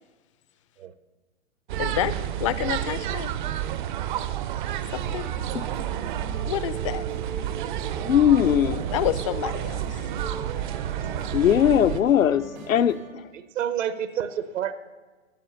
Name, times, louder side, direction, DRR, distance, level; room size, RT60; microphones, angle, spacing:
sound 1, 1.7-12.0, right 11 dB, 40° right, 0.5 m, -30 dB
voice 1, 1.8-2.1 2.4-3.3 4.9-5.3 6.5-7.0 8.9-10.0, left 12 dB, 25° left, 15 dB, 0.4 m, -28 dB
sound 2, 4.8-13.2, right 3 dB, 90° right, 2.6 m, -40 dB
voice 2, 8.0-8.8 11.3-13.0, left 10 dB, 85° left, 14 dB, 0.6 m, -20 dB
voice 3, 13.3-14.7, right 9 dB, 70° right, 12 dB, 1.0 m, -29 dB
13.0 x 7.4 x 6.9 m, 1.3 s
hypercardioid pair, 120°, 39 cm